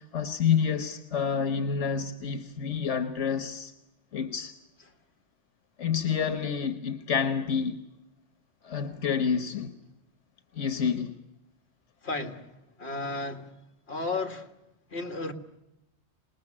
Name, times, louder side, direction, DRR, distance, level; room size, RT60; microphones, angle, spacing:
voice 1, 0.0-3.7 4.1-4.6 5.8-7.8 8.6-9.7 10.5-11.1, left 7 dB, 85° left, 1.5 m, -28 dB
voice 2, 12.0-12.5 12.8-13.5 13.9-14.5 14.9-15.3, left 3 dB, 60° left, 2.1 m, -33 dB
27.0 x 20.0 x 9.9 m
omnidirectional pair, 1.2 m